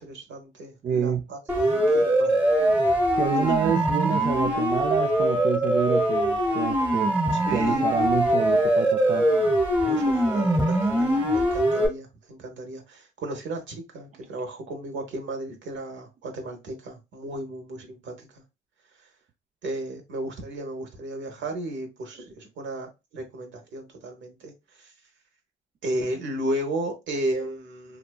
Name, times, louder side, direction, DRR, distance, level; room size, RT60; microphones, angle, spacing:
voice 1, 0.0-2.4 2.8-3.5 7.5-8.1 9.9-18.4 19.0-19.1 19.6-24.9 25.8-28.0, right 1 dB, 70° right, 3 dB, 0.9 m, -34 dB
voice 2, 0.8-1.2 3.2-7.2 7.5-9.3, right 7 dB, 40° right, 4 dB, 0.4 m, -27 dB
Siren, 1.5-11.9, equal, 10° right, 1.0 m, -22 dB
2.6 x 2.3 x 2.2 m, 0.25 s
cardioid pair, 90°, 20 cm